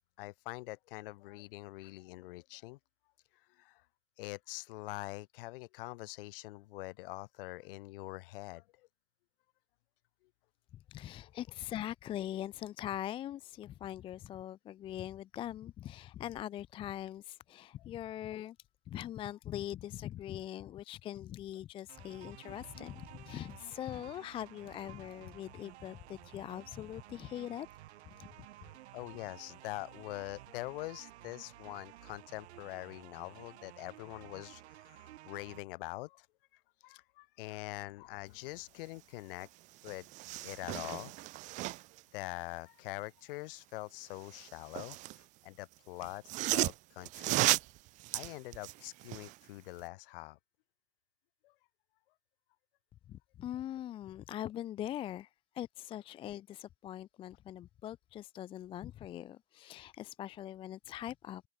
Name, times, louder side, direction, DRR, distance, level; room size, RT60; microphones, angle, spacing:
voice 1, 0.2-2.8 3.3-3.8 4.2-8.9 11.2-11.3 17.8-17.9 28.6-36.3 36.5-39.5 39.8-40.1 40.4-41.1 42.1-46.2 46.5-47.6 48.1-50.4 51.4-51.5, left 20 dB, 50° left, 6.7 m, -44 dB
voice 2, 10.9-18.6 18.9-27.7 28.2-28.3 53.1-55.3 55.5-61.4, left 12 dB, 15° left, 0.7 m, -42 dB
sound 1, 21.9-35.6, right 15 dB, 60° right, 5.3 m, -54 dB
sound 2, 39.4-39.5 39.8-42.0 44.1-45.2 46.0-49.4 49.8-49.9, right 20 dB, 20° right, 0.7 m, -35 dB
supercardioid pair, 170°, 36 cm